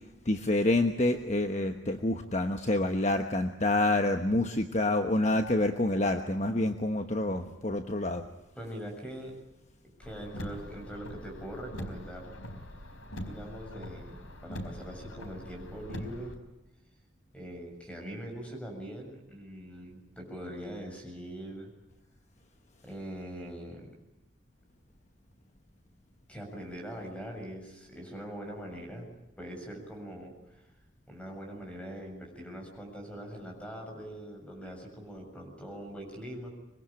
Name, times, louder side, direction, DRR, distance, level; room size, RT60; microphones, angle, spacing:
voice 1, 0.3-8.2, left 2 dB, 35° left, 6 dB, 1.2 m, -27 dB
voice 2, 8.6-9.4 10.0-12.4 13.2-16.4 17.3-21.7 22.8-23.9 26.3-29.1 29.4-30.7 31.1-36.5, equal, 5° left, 2 dB, 7.2 m, -42 dB
Car, 10.0-16.3, equal, 90° left, 4.1 m, -42 dB
25.0 x 22.5 x 8.9 m, 0.95 s
head